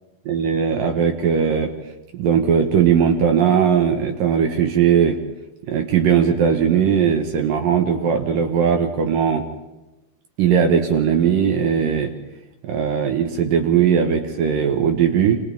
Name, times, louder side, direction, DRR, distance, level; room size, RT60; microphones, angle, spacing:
voice 1, 0.3-1.7 2.1-5.2 5.7-9.4 10.4-12.1 12.6-15.5, right 7 dB, 65° right, 5 dB, 2.5 m, -18 dB
29.0 x 26.5 x 3.6 m, 1.1 s
omnidirectional pair, 5.2 m